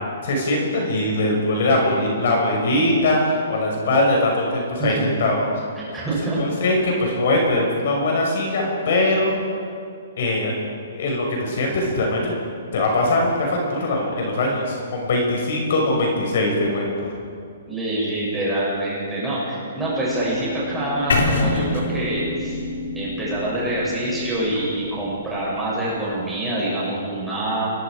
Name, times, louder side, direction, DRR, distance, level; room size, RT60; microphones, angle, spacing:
voice 1, 0.2-5.4 6.4-9.3 10.2-10.5 10.9-12.3 12.7-17.1, left 2 dB, 55° left, -1 dB, 5.9 m, -21 dB
voice 2, 5.8-6.4 17.7-22.6 22.9-27.7, right 1 dB, 5° right, -8 dB, 7.9 m, -25 dB
radar scanner deepsea hydrogen skyline com, 19.8-24.8, left 1 dB, 20° left, 4.6 m, -33 dB
sound 1, 21.1-25.1, left 2 dB, 90° left, 4.5 m, -26 dB
28.5 x 23.0 x 5.1 m, 2.3 s
hypercardioid pair, 165°, 0 cm